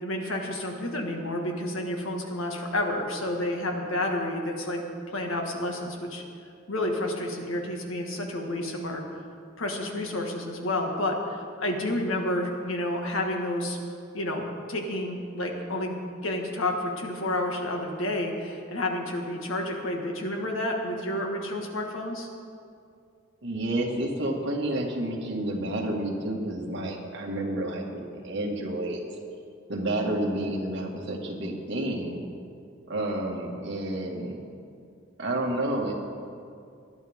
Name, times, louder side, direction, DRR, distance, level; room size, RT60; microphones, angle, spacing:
voice 1, 0.0-6.2 6.7-9.0 9.6-13.8 14.1-16.0 16.2-22.3, left 1 dB, 80° left, 2 dB, 1.8 m, -30 dB
voice 2, 23.4-29.0 29.7-32.2 32.9-34.4 35.2-35.9, right 1 dB, 60° right, 0 dB, 2.0 m, -30 dB
20.5 x 11.5 x 3.7 m, 2.4 s
head